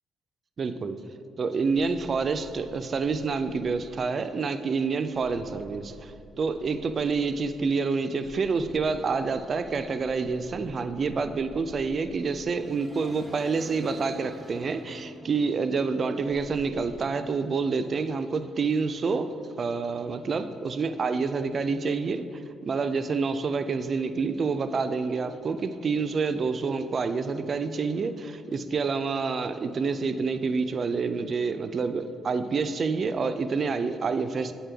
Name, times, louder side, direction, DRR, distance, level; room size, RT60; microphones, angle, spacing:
voice 1, 0.6-1.0 1.4-34.5, right 4 dB, 45° right, 9 dB, 0.3 m, -28 dB
sound 1, 1.9-4.1 5.1-7.7 8.2-17.0, equal, 5° left, 0.6 m, -49 dB
7.4 x 4.1 x 3.4 m, 2.4 s
cardioid pair, 90°, 0 cm